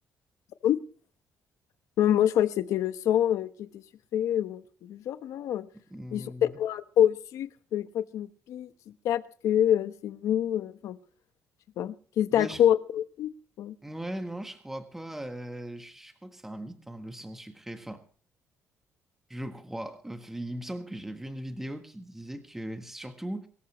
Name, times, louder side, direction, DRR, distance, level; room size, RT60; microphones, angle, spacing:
voice 1, 2.0-3.8 4.1-5.7 6.1-8.7 9.0-11.0 11.8-13.3 13.6-13.7, left 10 dB, 75° left, 1.2 m, -26 dB
voice 2, 5.9-6.5 12.3-12.6 13.8-18.0 19.3-23.5, right 1 dB, 5° right, 1.5 m, -39 dB
23.5 x 14.0 x 3.2 m
cardioid pair, 140°, 6 cm